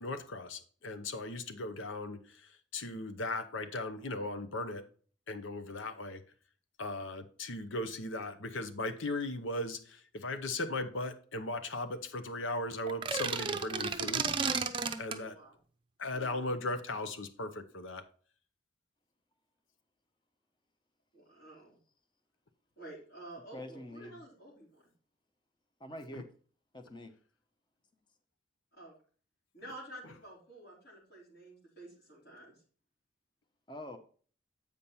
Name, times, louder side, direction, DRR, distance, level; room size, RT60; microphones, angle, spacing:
voice 1, 0.0-4.8 5.3-6.2 6.8-14.3 15.0-15.3 16.0-18.0 26.1-26.2, left 2 dB, 75° left, 9 dB, 0.9 m, -37 dB
sound 1, 12.9-15.2, right 5 dB, 25° right, 0.6 m, -33 dB
voice 2, 15.2-15.5 16.1-16.4 21.1-21.8 22.8-24.8 28.7-28.9 29.5-32.5, right 1 dB, 55° left, -4 dB, 4.0 m, -50 dB
voice 3, 23.5-24.2 25.8-26.3 26.7-27.1 33.7-34.0, left 1 dB, 25° left, 7 dB, 0.9 m, -45 dB
8.4 x 5.3 x 4.3 m, 0.43 s
head